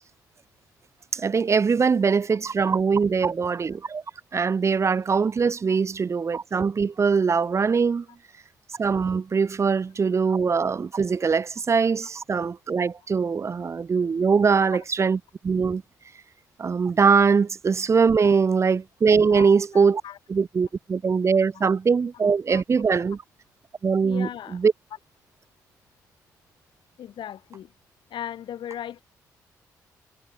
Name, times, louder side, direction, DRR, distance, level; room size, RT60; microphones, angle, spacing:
voice 1, 1.1-4.0 4.3-8.0 8.8-15.2 15.4-15.8 16.6-20.0 20.3-23.2 23.8-24.7, right 5 dB, 30° right, 0.4 m, -22 dB
voice 2, 19.3-20.2 21.5-21.7 22.5-22.6 24.0-24.6 27.0-27.7 28.1-29.0, left 10 dB, 65° left, 6.6 m, -38 dB
hypercardioid pair, 45°, 9 cm